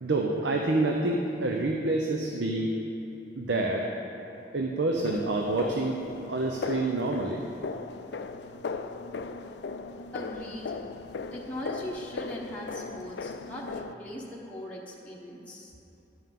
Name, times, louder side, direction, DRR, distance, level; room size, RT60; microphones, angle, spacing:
voice 1, 0.0-2.7 3.4-3.9 4.5-6.0 6.3-7.4, right 2 dB, 80° right, 1 dB, 0.8 m, -27 dB
sound 1, 5.0-14.0, left 4 dB, 65° left, 0.4 m, -38 dB
voice 2, 10.1-10.8 11.2-15.7, left 1 dB, 10° left, -5 dB, 1.0 m, -40 dB
11.5 x 5.6 x 7.5 m, 2.9 s
head